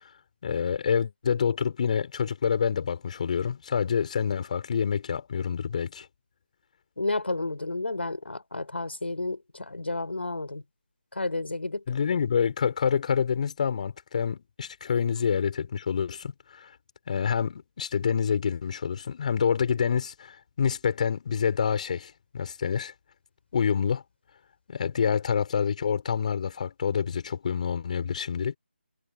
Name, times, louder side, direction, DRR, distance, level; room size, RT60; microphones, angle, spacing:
voice 1, 0.4-6.1 11.9-16.3 16.6-16.7 17.1-22.9 23.5-24.0 24.7-28.6, left 7 dB, 40° left, 5.6 m, -27 dB
voice 2, 7.0-10.6 11.1-11.8, left 2 dB, 70° left, 4.6 m, -31 dB
figure-of-eight pair, 155°, 6 cm